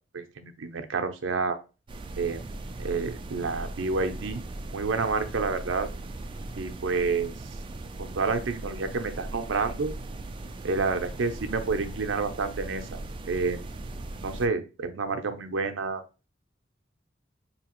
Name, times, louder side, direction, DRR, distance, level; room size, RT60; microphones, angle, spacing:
voice 1, 0.1-1.6 2.2-2.4 2.8-4.4 4.7-5.9 6.6-7.3 8.0-9.9 10.6-13.0 13.3-13.6 14.2-16.0, right 4 dB, 90° right, 7 dB, 0.6 m, -29 dB
sound 1, 1.9-14.5, right 2 dB, 25° right, 0.3 m, -39 dB
4.7 x 2.8 x 2.9 m, 0.32 s
head